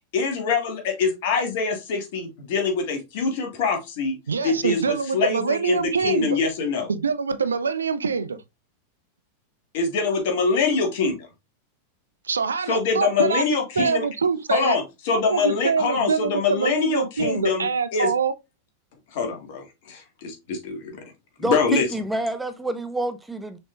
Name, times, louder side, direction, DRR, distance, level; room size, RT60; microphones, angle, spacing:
voice 1, 0.1-4.2 4.4-6.9 9.7-11.2 12.7-14.0 14.5-17.7 17.9-18.1 19.1-21.1 21.4-21.9, left 5 dB, 50° left, 1.6 m, -24 dB
voice 2, 4.3-6.4 6.9-8.4 12.3-13.5 13.8-14.8 15.1-18.3, right 5 dB, 70° right, 0.4 m, -24 dB
voice 3, 21.4-23.6, right 2 dB, 5° right, 0.5 m, -28 dB
6.0 x 3.6 x 2.4 m
figure-of-eight pair, 90°, 0 cm